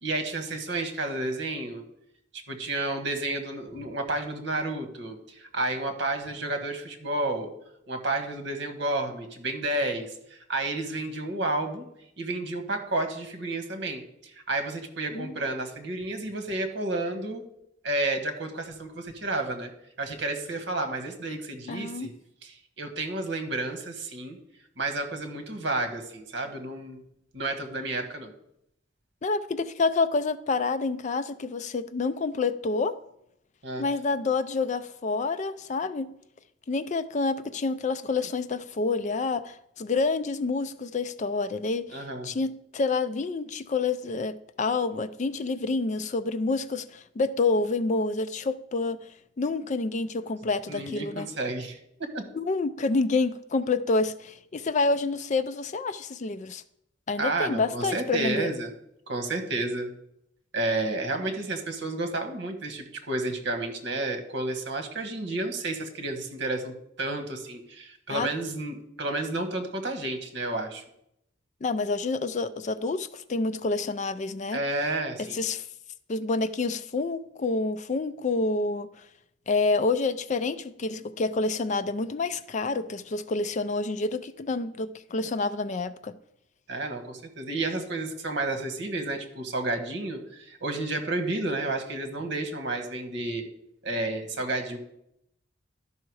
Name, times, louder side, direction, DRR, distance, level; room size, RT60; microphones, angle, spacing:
voice 1, 0.0-1.8 2.5-7.5 7.9-11.8 12.2-17.4 17.8-19.7 20.0-22.1 22.4-24.4 24.8-27.0 27.3-28.3 33.6-33.8 41.9-42.3 50.7-51.8 52.1-52.2 57.2-58.7 59.1-59.9 60.5-70.8 74.5-75.4 86.7-93.5 93.8-94.8, right 2 dB, 65° right, 5 dB, 1.4 m, -31 dB
voice 2, 21.7-22.1 29.2-33.0 33.8-36.1 36.7-49.0 49.4-51.3 52.3-56.6 57.1-58.5 68.1-68.3 71.6-74.6 75.2-75.7 76.1-78.9 79.5-86.2, left 3 dB, 40° left, 13 dB, 0.4 m, -28 dB
12.0 x 5.7 x 4.7 m, 0.77 s
head